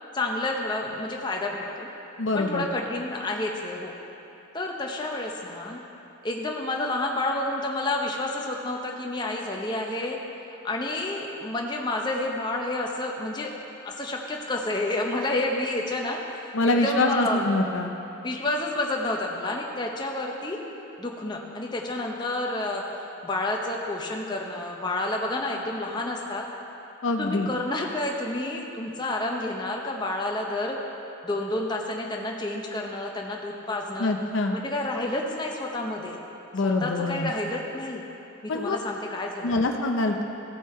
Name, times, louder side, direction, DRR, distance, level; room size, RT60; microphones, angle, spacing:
voice 1, 0.1-1.9 2.3-3.9 4.5-5.8 6.2-10.2 10.6-13.5 13.8-17.5 18.2-20.6 21.0-22.8 23.2-26.5 27.2-30.8 31.2-34.1 34.5-36.2 36.6-38.0 38.4-39.6, left 2 dB, 20° left, 0 dB, 0.8 m, -29 dB
voice 2, 2.2-2.7 16.5-18.0 27.0-27.5 34.0-34.6 36.5-37.3 38.5-38.8 39.4-40.2, left 2 dB, 65° left, 3 dB, 0.6 m, -25 dB
15.5 x 5.4 x 4.3 m, 2.8 s
head